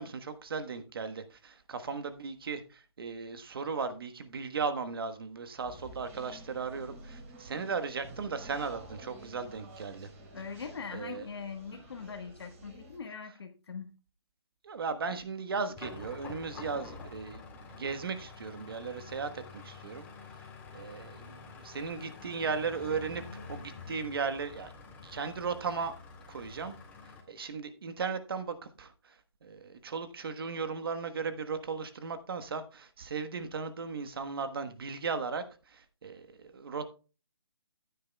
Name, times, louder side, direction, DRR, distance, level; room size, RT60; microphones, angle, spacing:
voice 1, 0.0-10.1 10.9-11.2 11.7-11.8 14.6-17.4 17.7-20.1 20.7-24.7 25.0-25.9 26.3-26.7 27.3-29.1 29.4-36.8, right 5 dB, 55° right, 1.3 m, -36 dB
sound 1, 5.6-13.0, right 2 dB, 30° right, 3.5 m, -51 dB
voice 2, 10.3-13.9, left 5 dB, 65° left, 1.4 m, -41 dB
sound 2, 15.8-27.2, left 4 dB, 10° left, 2.0 m, -48 dB
14.5 x 9.4 x 2.3 m
hypercardioid pair, 155°, 14 cm